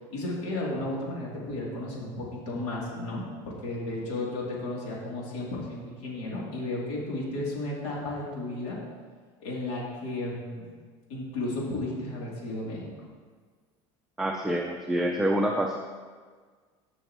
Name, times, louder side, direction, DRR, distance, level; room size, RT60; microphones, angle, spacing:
voice 1, 0.1-8.8 9.4-10.6 11.1-12.9, left 2 dB, 85° left, -5 dB, 2.9 m, -33 dB
voice 2, 14.2-15.8, right 1 dB, 5° right, 2 dB, 0.6 m, -27 dB
17.0 x 6.3 x 3.0 m, 1.5 s
supercardioid pair, 105°, 15 cm